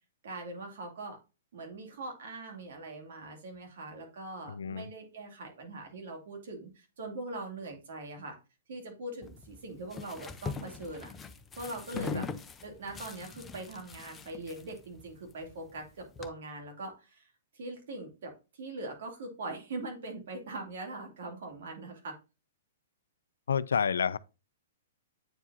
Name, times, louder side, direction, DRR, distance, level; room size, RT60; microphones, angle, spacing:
voice 1, 0.2-1.2 1.5-8.4 8.7-11.1 11.6-12.3 12.6-22.2, right 2 dB, 65° right, 2.5 m, -42 dB
voice 2, 4.5-4.9 11.9-12.3 23.5-24.2, left 7 dB, 80° left, 0.3 m, -30 dB
sound 1, 9.2-16.3, left 5 dB, 15° left, 0.6 m, -43 dB
8.5 x 4.6 x 2.6 m
hypercardioid pair, 120°, 0 cm